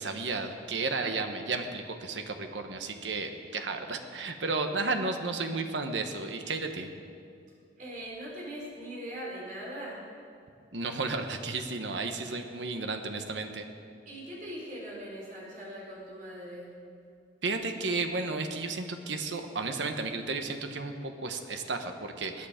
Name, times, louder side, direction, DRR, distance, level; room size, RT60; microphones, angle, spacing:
voice 1, 0.0-6.9 10.7-13.7 17.4-22.5, right 3 dB, 85° right, 6 dB, 1.2 m, -33 dB
voice 2, 7.8-10.0 14.0-16.8, equal, 45° right, -4 dB, 4.6 m, -41 dB
21.5 x 9.7 x 5.1 m, 2.4 s
head